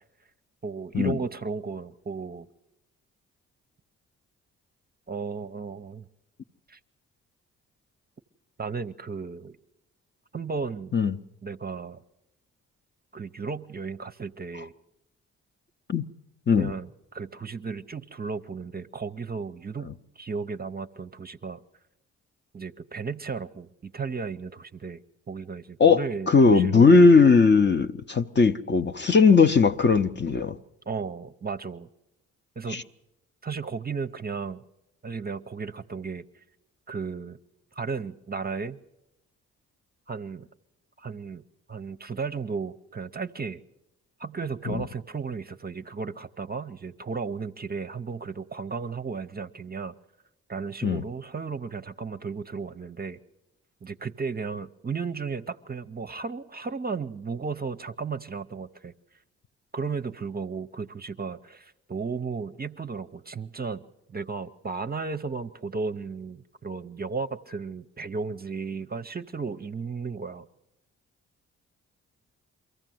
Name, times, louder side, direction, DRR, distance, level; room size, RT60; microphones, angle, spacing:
voice 1, 0.6-2.5 5.1-6.1 6.7-6.8 8.6-9.6 10.3-10.9 11.4-12.0 13.1-14.7 16.5-19.9 20.2-21.6 22.5-25.0 25.3-27.0 30.9-31.9 32.6-32.8 33.4-34.6 35.0-36.2 36.9-37.4 37.8-38.8 40.1-40.5 41.0-41.4 41.7-43.6 44.2-49.9 50.5-53.2 53.8-58.9 59.7-63.8 64.1-70.5, right 5 dB, 25° right, 0.7 m, -34 dB
voice 2, 25.8-30.6 32.7-32.8 44.7-44.8 50.8-51.0, left 4 dB, 30° left, 0.7 m, -19 dB
23.0 x 15.0 x 7.7 m
hypercardioid pair, 45°, 34 cm